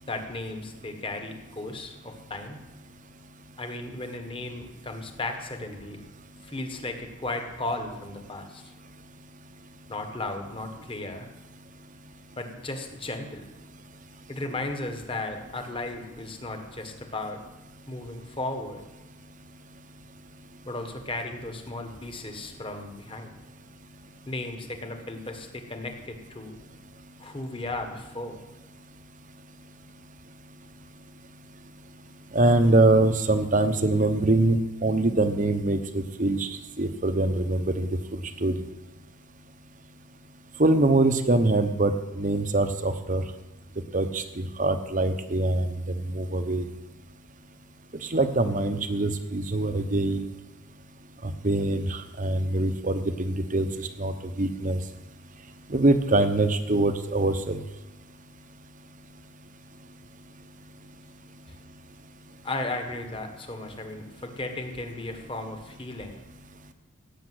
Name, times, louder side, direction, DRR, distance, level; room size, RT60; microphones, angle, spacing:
voice 1, 0.1-2.6 3.6-6.0 6.4-8.7 9.9-11.3 12.4-13.4 14.3-17.4 17.8-18.8 20.6-23.3 24.3-26.6 27.2-28.4 62.4-66.2, left 2 dB, 25° left, 5 dB, 1.4 m, -35 dB
voice 2, 32.3-38.6 40.6-43.2 43.9-46.7 48.1-50.3 51.2-54.8 55.7-57.6, right 2 dB, 35° right, 9 dB, 0.9 m, -24 dB
17.0 x 7.0 x 7.9 m, 1.0 s
head